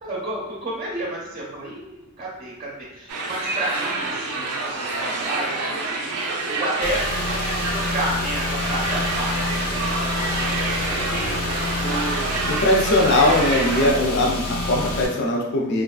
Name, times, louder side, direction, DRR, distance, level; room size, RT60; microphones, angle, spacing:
voice 1, 0.0-6.1 6.5-11.3 11.8-12.6 13.2-13.4, right 1 dB, 35° right, -5 dB, 0.5 m, -31 dB
sound 1, 3.1-13.9, right 3 dB, 85° right, 0.5 m, -28 dB
Car / Engine, 6.8-15.1, left 2 dB, 80° left, 0.7 m, -28 dB
voice 2, 12.5-15.8, left 1 dB, 50° left, -1 dB, 0.4 m, -20 dB
3.1 x 2.3 x 2.3 m, 1.0 s
head